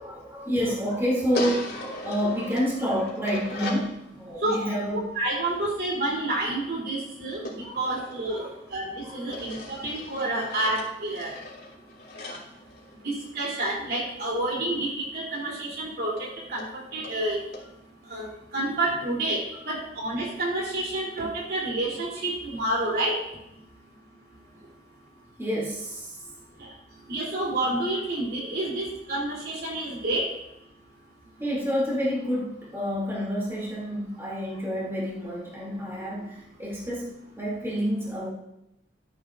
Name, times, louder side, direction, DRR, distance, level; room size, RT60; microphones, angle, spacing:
voice 1, 0.0-5.1 7.6-7.8 8.3-8.5 9.0-9.3 25.4-26.2 31.4-38.3, equal, 15° right, -5 dB, 2.6 m, -29 dB
sound 1, 1.3-3.9 7.4-8.8 9.3-13.4 15.3-15.4 15.7-15.8 16.2-16.3 16.6-16.7 17.0-17.2 17.5-17.6, left 2 dB, 65° left, 2.5 m, -38 dB
voice 2, 4.9-7.4 7.7-11.3 12.2-12.4 13.0-17.4 18.1-23.2 26.6-26.7 27.1-30.2, right 1 dB, 60° right, -3 dB, 3.1 m, -29 dB
13.0 x 9.8 x 2.5 m, 0.85 s
head